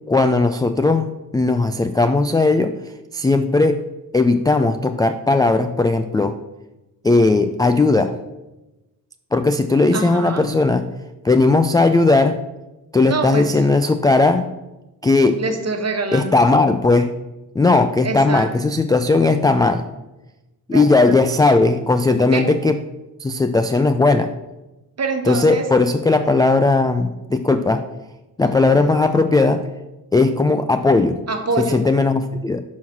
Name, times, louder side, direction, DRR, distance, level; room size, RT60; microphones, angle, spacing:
voice 1, 0.1-2.7 3.1-3.8 4.1-6.4 7.0-8.1 9.3-10.8 11.2-12.4 12.9-14.5 15.0-15.4 16.1-17.1 17.6-19.8 20.7-22.8 23.2-24.3 25.3-27.8 28.4-29.6 30.1-31.2 31.6-32.6, left 3 dB, 10° left, 9 dB, 0.3 m, -17 dB
voice 2, 9.9-10.5 13.0-13.6 15.4-16.3 18.0-18.5 20.7-21.2 22.2-22.5 25.0-25.7 28.8-28.9 31.3-31.8, right 3 dB, 40° right, 4 dB, 1.3 m, -25 dB
6.1 x 3.9 x 6.0 m, 1.0 s
supercardioid pair, 60°, 41 cm